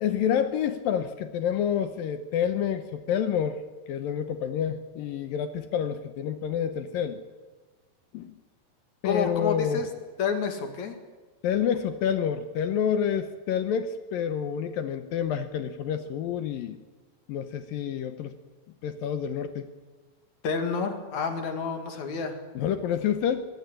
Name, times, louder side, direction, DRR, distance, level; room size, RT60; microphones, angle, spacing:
voice 1, 0.0-3.6 3.9-7.2 8.1-8.4 9.0-9.9 11.4-16.8 17.3-18.3 18.8-19.7 22.6-23.5, left 8 dB, 75° left, 10 dB, 2.3 m, -28 dB
voice 2, 9.0-9.9 10.2-11.0 20.4-22.4, left 5 dB, 50° left, 6 dB, 3.1 m, -29 dB
21.5 x 16.0 x 10.0 m, 1.3 s
omnidirectional pair, 5.0 m